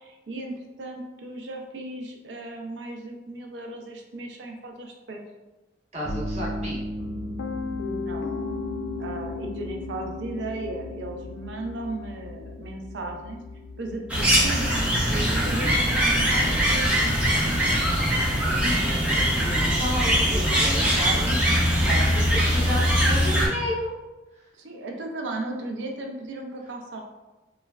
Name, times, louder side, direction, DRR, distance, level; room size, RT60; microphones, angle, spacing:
voice 1, 0.0-5.2 7.8-8.3 9.0-13.4 13.8-16.9 24.5-27.0, right 2 dB, 70° right, 2 dB, 0.5 m, -36 dB
voice 2, 5.9-6.8 18.5-23.9, left 1 dB, 35° right, -6 dB, 0.8 m, -32 dB
sound 1, 6.0-22.0, equal, 40° left, 0.6 m, -40 dB
Piano, 7.0-18.9, left 4 dB, 90° left, 0.3 m, -38 dB
sound 2, 14.1-23.5, equal, 5° right, 0.5 m, -22 dB
3.0 x 2.2 x 2.3 m, 1.1 s
head